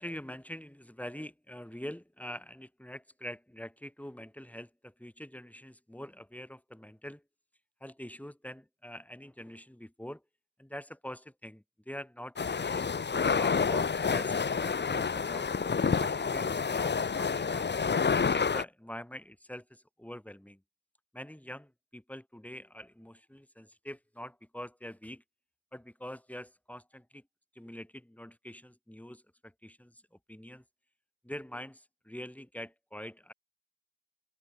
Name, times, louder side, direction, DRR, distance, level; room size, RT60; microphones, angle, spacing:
voice 1, 0.0-7.2 7.8-10.2 10.6-12.9 13.2-15.5 16.0-17.6 18.3-20.6 21.1-25.2 25.7-27.2 27.5-30.0 30.3-30.6 31.2-33.3, equal, 5° left, 2.8 m, -45 dB
sound 1, 12.4-18.6, left 5 dB, 25° left, 1.1 m, -29 dB
cardioid pair, 110°, 40 cm